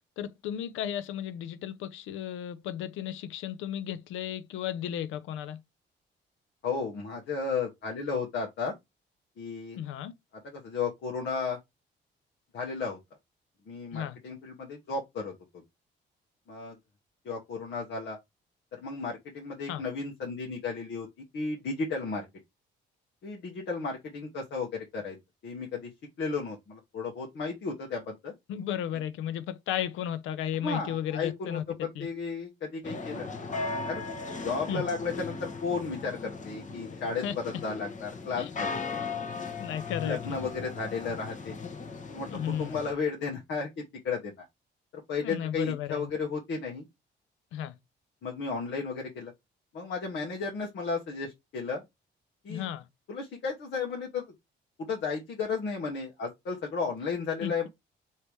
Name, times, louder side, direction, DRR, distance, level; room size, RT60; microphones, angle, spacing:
voice 1, 0.2-5.6 9.8-10.1 13.9-14.2 19.7-19.8 28.5-31.6 32.0-32.1 34.7-34.9 37.2-37.3 38.4-38.5 39.6-40.4 42.3-42.8 45.2-46.1 47.5-47.7 52.5-52.9 57.4-57.7, left 10 dB, 90° left, 0.5 m, -34 dB
voice 2, 6.6-8.7 9.4-9.8 10.4-11.6 12.5-13.0 13.7-15.3 16.5-16.8 17.2-18.2 18.8-21.1 21.3-22.3 23.2-25.2 25.4-25.9 26.2-28.3 30.6-33.3 33.9-34.0 34.4-38.8 40.0-41.6 42.1-43.7 44.0-44.5 45.1-46.8 48.2-49.3 49.7-51.8 52.4-52.7 53.1-54.2 54.8-57.7, left 4 dB, 65° left, 1.1 m, -34 dB
sound 1, 32.8-42.9, left 4 dB, 40° left, 1.0 m, -37 dB
3.3 x 2.8 x 4.4 m
cardioid pair, 90°, 20 cm